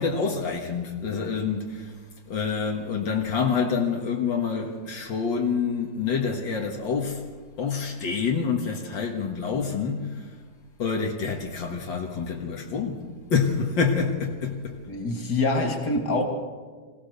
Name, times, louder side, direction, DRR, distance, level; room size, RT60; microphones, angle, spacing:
voice 1, 0.0-1.9 2.3-7.2 7.6-10.3 10.8-14.8, left 5 dB, 85° left, 2.3 m, -27 dB
voice 2, 14.9-16.2, left 2 dB, 60° left, 3.3 m, -25 dB
26.0 x 17.0 x 6.8 m
omnidirectional pair, 2.0 m